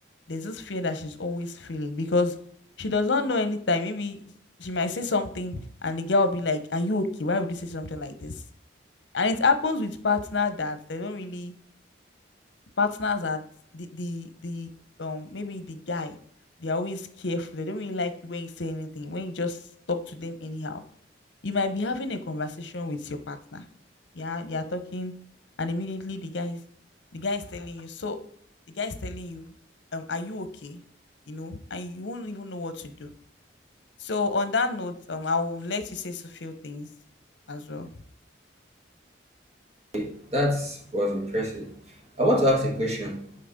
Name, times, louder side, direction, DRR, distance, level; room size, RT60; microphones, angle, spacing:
voice 1, 0.3-2.3 2.8-4.2 4.6-8.3 9.1-11.6 12.8-13.4 13.7-14.7 15.0-16.2 16.6-19.6 19.9-20.8 21.4-23.6 24.1-25.1 25.6-26.6 27.1-28.2 28.8-29.5 29.9-30.8 31.3-33.1 34.0-36.9 37.5-37.9, left 3 dB, 70° left, 0.8 m, -29 dB
voice 2, 39.9-41.7 42.2-43.2, equal, 35° right, 1.4 m, -25 dB
5.9 x 4.1 x 5.0 m
head